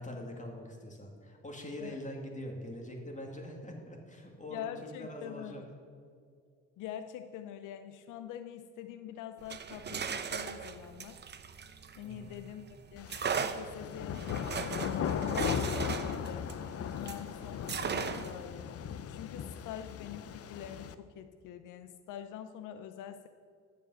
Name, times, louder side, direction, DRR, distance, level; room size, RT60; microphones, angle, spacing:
voice 1, 0.0-4.7 5.0-5.6 12.0-12.4, left 1 dB, 25° left, 1 dB, 2.2 m, -43 dB
voice 2, 4.5-5.5 6.8-11.2 12.0-16.6 17.0-18.7 19.1-23.3, left 10 dB, 90° left, 8 dB, 0.6 m, -45 dB
sound 1, 9.4-12.4 13.1-17.3 17.7-18.5, right 6 dB, 35° right, 0.7 m, -37 dB
sound 2, 13.0-20.9, left 8 dB, 50° left, 0.6 m, -37 dB
13.5 x 5.2 x 7.9 m, 2.2 s
cardioid pair, 90°, 30 cm